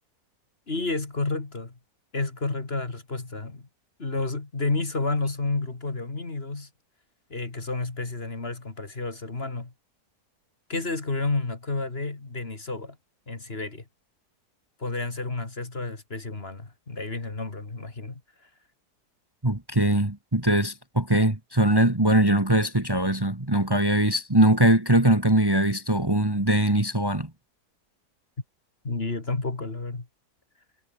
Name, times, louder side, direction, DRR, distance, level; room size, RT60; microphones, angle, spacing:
voice 1, 0.7-1.7 2.1-3.7 4.0-6.7 7.3-9.7 10.7-13.0 13.3-13.8 14.8-18.2 28.8-30.1, left 3 dB, 35° left, 2.8 m, -30 dB
voice 2, 19.4-27.3, right 1 dB, 15° right, 2.0 m, -21 dB
omnidirectional pair, 1.7 m